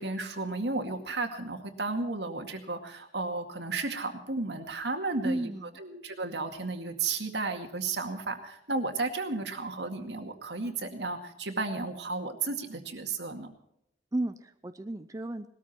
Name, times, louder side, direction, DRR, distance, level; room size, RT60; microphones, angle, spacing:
voice 1, 0.0-5.5 5.8-13.5, right 3 dB, 75° right, 5 dB, 2.1 m, -33 dB
voice 2, 5.2-5.8 14.1-15.5, right 1 dB, 20° right, 9 dB, 0.6 m, -33 dB
19.5 x 13.5 x 4.4 m, 0.77 s
head